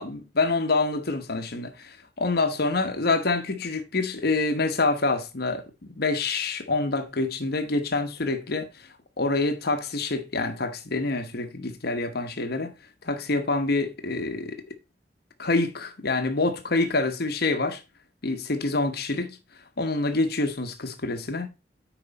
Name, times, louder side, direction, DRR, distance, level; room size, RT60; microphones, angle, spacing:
voice 1, 0.0-5.6 5.9-8.7 9.2-12.7 13.0-14.6 15.4-17.8 18.2-19.4 19.8-21.5, left 3 dB, 60° left, 1.1 m, -26 dB
9.3 x 5.0 x 4.0 m
head